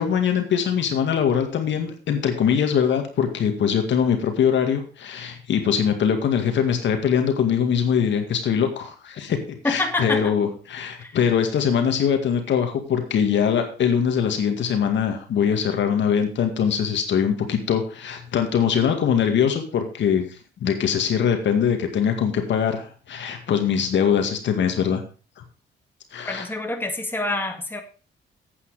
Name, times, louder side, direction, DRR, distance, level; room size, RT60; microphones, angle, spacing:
voice 1, 0.0-20.3 20.6-25.0 26.1-26.4, left 7 dB, 65° left, 5 dB, 2.0 m, -22 dB
voice 2, 9.6-10.3 11.0-11.2 26.2-27.8, left 2 dB, 10° left, 4 dB, 2.0 m, -27 dB
8.8 x 8.5 x 4.9 m, 0.36 s
cardioid pair, 90°, 20 cm